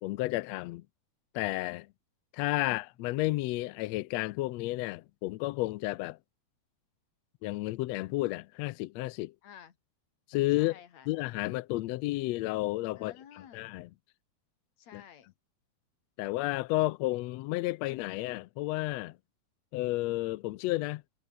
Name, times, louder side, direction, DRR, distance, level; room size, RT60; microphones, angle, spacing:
voice 1, 0.0-0.8 1.3-1.9 2.3-6.2 7.4-9.3 10.3-10.7 11.1-13.1 13.5-13.9 14.9-15.0 16.2-19.2 19.7-21.0, left 19 dB, 80° left, 1.6 m, -32 dB
voice 2, 9.4-9.8 10.6-11.1 13.0-13.7 14.8-15.3, left 9 dB, 65° left, 3.1 m, -52 dB
omnidirectional pair, 3.5 m